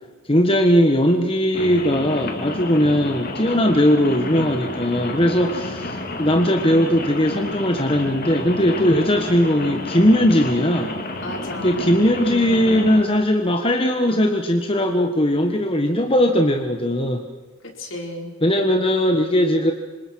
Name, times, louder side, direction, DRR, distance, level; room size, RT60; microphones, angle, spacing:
voice 1, 0.3-11.0 11.6-17.2 18.4-19.7, equal, 25° left, 5 dB, 1.4 m, -19 dB
Rain, 1.5-13.0, left 2 dB, 45° left, 2.7 m, -31 dB
voice 2, 11.2-12.8 17.6-18.3, left 1 dB, 60° left, 2 dB, 4.9 m, -34 dB
26.5 x 26.0 x 6.4 m, 1.3 s
head